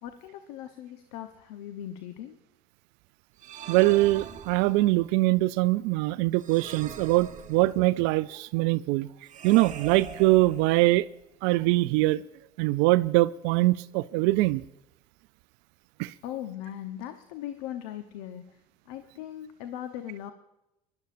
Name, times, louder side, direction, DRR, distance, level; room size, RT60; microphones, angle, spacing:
voice 1, 0.0-2.4 16.2-18.6 18.9-20.3, left 11 dB, 65° left, 0.9 m, -39 dB
sound 1, 3.4-5.1 6.4-8.0 9.3-11.1, right 8 dB, 40° right, 1.2 m, -42 dB
voice 2, 3.7-9.1 9.4-11.1 11.4-12.2 12.6-14.6 16.0-16.1, right 19 dB, 60° right, 0.4 m, -23 dB
23.0 x 12.0 x 2.6 m
hypercardioid pair, 70°, 20 cm